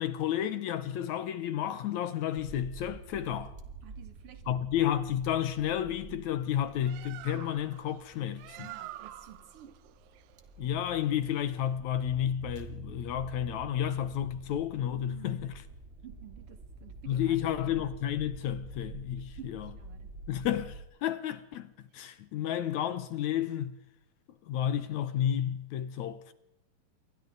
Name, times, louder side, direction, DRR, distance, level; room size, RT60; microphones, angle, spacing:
voice 1, 0.0-3.5 4.5-8.7 10.6-15.6 17.1-19.7 20.3-20.7 21.0-23.7 24.5-26.3, left 10 dB, 70° left, 1.9 m, -31 dB
sound 1, 2.3-20.8, right 4 dB, 25° right, 1.7 m, -48 dB
voice 2, 3.8-4.7 8.6-9.8 14.9-15.4 16.0-17.9 19.4-20.1, right 11 dB, 45° right, 2.6 m, -51 dB
Bird, 6.6-11.8, right 15 dB, 75° right, 2.4 m, -48 dB
27.5 x 23.5 x 4.0 m
omnidirectional pair, 4.2 m